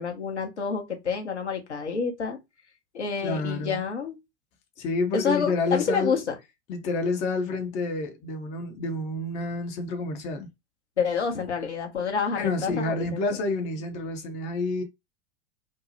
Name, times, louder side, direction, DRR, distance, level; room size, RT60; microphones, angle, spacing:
voice 1, 0.0-2.4 2.9-4.2 5.1-6.3 11.0-13.5, left 6 dB, 80° left, 0.8 m, -28 dB
voice 2, 3.2-3.8 4.8-6.2 6.7-10.5 12.3-14.8, left 3 dB, 20° left, 0.4 m, -29 dB
2.6 x 2.0 x 2.6 m
figure-of-eight pair, 90°, 34 cm